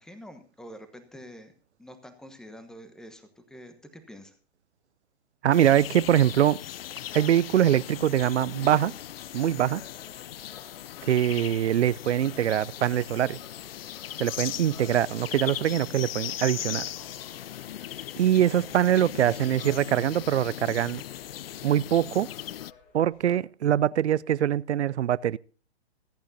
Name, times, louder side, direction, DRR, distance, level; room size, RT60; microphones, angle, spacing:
voice 1, 0.0-1.5 1.8-4.3, equal, ahead, 1.1 m, -46 dB
voice 2, 5.4-6.6 7.1-8.9 9.3-9.8 11.0-13.4 14.2-16.8 18.2-21.0 21.6-22.3 22.9-25.4, right 11 dB, 85° right, 0.5 m, -23 dB
sound 1, 5.5-22.7, left 12 dB, 60° left, 0.5 m, -38 dB
sound 2, 9.0-23.4, left 5 dB, 25° left, 3.4 m, -55 dB
25.5 x 8.8 x 2.7 m
hypercardioid pair, 140°, 33 cm